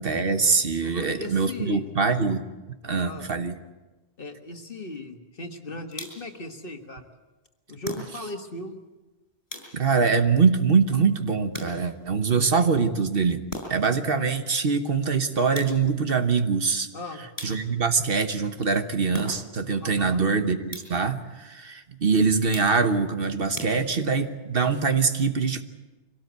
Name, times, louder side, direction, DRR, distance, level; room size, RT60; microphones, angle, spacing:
voice 1, 0.0-2.4 2.8-3.5 9.7-13.4 13.7-16.9 17.4-25.6, right 5 dB, 60° right, 8 dB, 1.3 m, -23 dB
voice 2, 0.8-1.9 3.0-3.3 4.2-7.1 7.7-8.8 16.9-17.2 19.8-20.2, left 2 dB, 55° left, 5 dB, 1.9 m, -37 dB
sound 1, 5.9-6.4 7.8-8.5 9.5-10.1 11.5-12.1 13.5-14.0 15.5-16.1 17.4-17.9 19.1-19.7 20.7-21.2 22.5-23.0 23.5-24.3, left 1 dB, 35° left, 6.1 m, -39 dB
24.5 x 17.5 x 8.2 m, 1.2 s
omnidirectional pair, 1.1 m